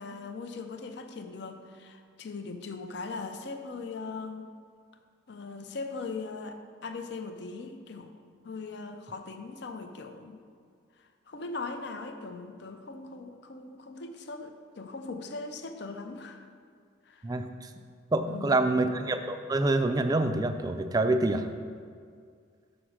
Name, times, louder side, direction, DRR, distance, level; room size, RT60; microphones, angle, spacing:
voice 1, 0.0-4.5 5.3-8.1 8.4-10.4 11.0-16.5 17.1-17.4 18.2-18.6, left 3 dB, 60° left, 6 dB, 0.5 m, -40 dB
voice 2, 17.2-17.7 18.1-21.5, right 2 dB, 20° right, 8 dB, 0.3 m, -26 dB
6.0 x 5.1 x 6.4 m, 2.1 s
head